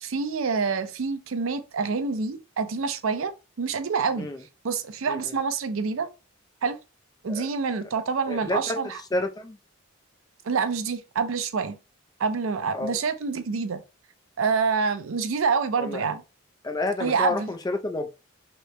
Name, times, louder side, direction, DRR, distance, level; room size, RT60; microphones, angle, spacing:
voice 1, 0.0-4.3 4.6-6.1 6.6-6.8 7.2-9.0 10.4-11.8 12.2-13.8 14.4-16.2 17.0-17.5, right 5 dB, 70° right, 0.5 m, -27 dB
voice 2, 8.3-8.8 9.1-9.6 12.7-13.0 15.8-16.0 16.6-18.1, left 2 dB, 20° left, 0.4 m, -29 dB
3.1 x 2.8 x 3.2 m
head